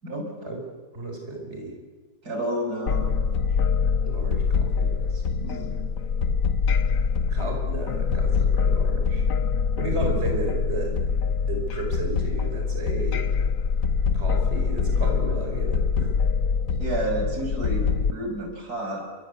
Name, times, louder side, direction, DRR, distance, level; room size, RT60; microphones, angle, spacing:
voice 1, 0.9-1.7 4.0-5.2 5.5-5.6 7.3-9.2 9.8-11.0 11.5-13.2 14.1-16.1, right 2 dB, 45° right, 1 dB, 5.2 m, -33 dB
voice 2, 2.2-3.1 5.4-5.7 16.8-19.0, right 1 dB, 90° right, 2 dB, 6.6 m, -30 dB
sound 1, 2.9-18.1, left 5 dB, 65° left, 1.4 m, -24 dB
30.0 x 22.5 x 8.3 m, 1.4 s
omnidirectional pair, 1.6 m